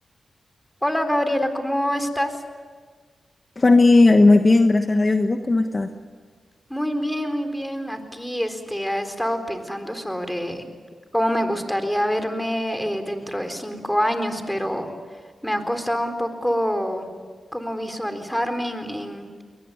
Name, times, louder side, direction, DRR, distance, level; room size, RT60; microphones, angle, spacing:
voice 1, 0.8-2.4 6.7-10.7 11.1-14.9 15.4-17.1 17.5-19.3, equal, 5° left, 7 dB, 4.0 m, -26 dB
voice 2, 3.6-5.9, left 2 dB, 35° left, 6 dB, 1.3 m, -16 dB
22.5 x 20.5 x 9.6 m, 1.5 s
cardioid pair, 55°, 0 cm